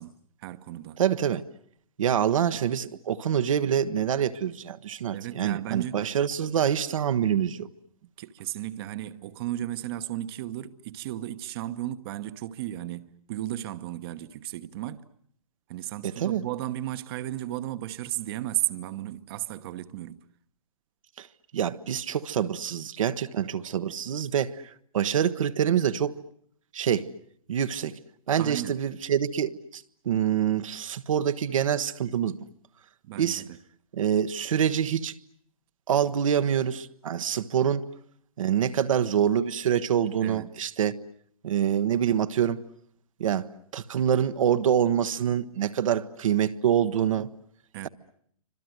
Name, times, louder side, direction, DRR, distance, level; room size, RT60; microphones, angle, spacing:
voice 1, 0.0-1.0 5.1-6.0 8.0-15.1 15.7-20.2 28.4-28.8 33.0-33.6 40.2-40.5 47.7-47.9, right 14 dB, 45° right, 1.1 m, -34 dB
voice 2, 1.0-1.4 2.0-7.7 16.0-16.4 21.2-21.3 21.5-24.6 24.9-26.1 26.7-27.1 27.5-27.9 28.3-32.4 33.2-33.4 33.9-35.1 35.9-37.9 38.4-41.0 41.4-42.6 43.2-47.3, right 9 dB, 70° right, 1.2 m, -26 dB
28.5 x 26.0 x 7.9 m
hypercardioid pair, 135°, 18 cm